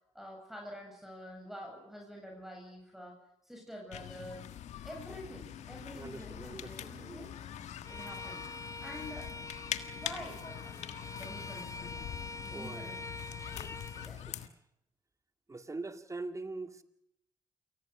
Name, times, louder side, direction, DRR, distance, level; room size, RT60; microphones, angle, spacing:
voice 1, 0.1-3.2 3.4-4.5 4.8-7.3 7.9-8.5 8.8-9.3 9.9-12.9 13.5-13.6 14.0-14.2, equal, ahead, 7.8 m, -47 dB
sound 1, 3.9-14.5, left 10 dB, 75° left, 1.5 m, -43 dB
voice 2, 5.9-7.3 12.5-13.0 14.0-14.5 15.5-16.8, right 3 dB, 25° right, 2.2 m, -43 dB
Bowed string instrument, 7.8-14.1, left 2 dB, 25° left, 0.8 m, -45 dB
28.5 x 19.0 x 6.4 m
supercardioid pair, 50°, 12 cm